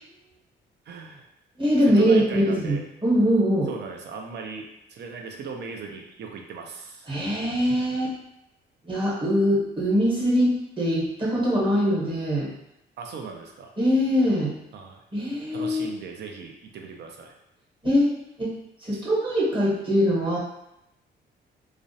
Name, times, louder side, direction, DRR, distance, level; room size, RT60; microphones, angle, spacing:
voice 1, 0.9-1.3 1.8-2.8 3.7-7.1 13.0-13.7 14.7-15.0 15.5-17.4 18.9-19.0, right 5 dB, 60° right, 2 dB, 0.5 m, -38 dB
voice 2, 1.6-3.7 7.1-8.1 8.8-12.5 13.8-14.5 15.1-15.8 17.8-20.4, equal, 25° right, -5 dB, 1.0 m, -22 dB
2.4 x 2.0 x 2.7 m, 0.85 s
cardioid pair, 90°, 20 cm